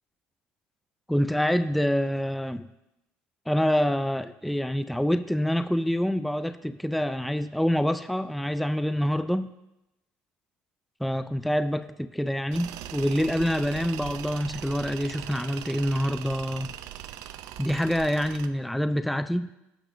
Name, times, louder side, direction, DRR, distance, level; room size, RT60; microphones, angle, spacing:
voice 1, 1.1-2.7 3.5-9.5 11.0-16.7 17.6-19.5, equal, ahead, 11 dB, 0.4 m, -26 dB
Tools, 12.5-18.5, right 12 dB, 75° right, 0.4 m, -40 dB
15.0 x 5.9 x 2.5 m, 0.92 s
supercardioid pair, 85°, 6 cm